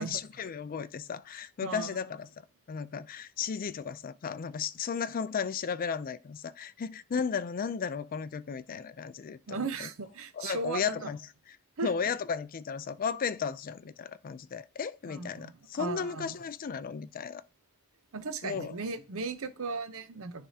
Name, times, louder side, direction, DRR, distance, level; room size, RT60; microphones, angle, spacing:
voice 1, 0.0-2.3 2.7-9.9 10.3-11.2 11.8-17.4 18.4-18.7, left 6 dB, 40° left, 0.4 m, -35 dB
voice 2, 1.6-2.0 9.5-11.1 11.8-11.9 15.1-16.4 18.1-20.5, right 4 dB, 65° right, 0.7 m, -36 dB
10.0 x 3.5 x 2.8 m
head